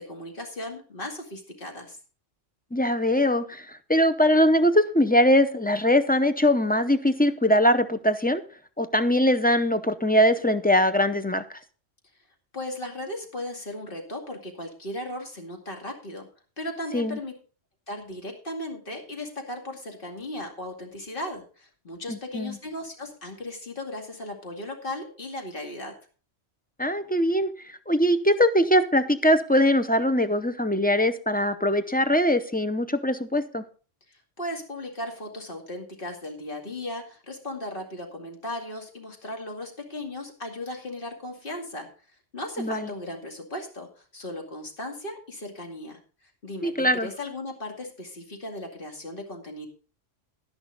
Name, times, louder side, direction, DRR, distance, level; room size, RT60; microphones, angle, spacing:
voice 1, 0.0-2.0 12.5-16.3 16.6-17.4 17.9-25.9 34.1-41.9 42.3-49.7, left 1 dB, 45° left, 2 dB, 2.6 m, -36 dB
voice 2, 2.7-8.4 8.8-11.4 16.9-17.2 22.1-22.6 26.8-27.5 27.9-33.6 42.6-42.9 46.6-47.1, equal, 10° left, 10 dB, 0.5 m, -22 dB
11.5 x 10.5 x 3.9 m, 0.38 s
omnidirectional pair, 1.2 m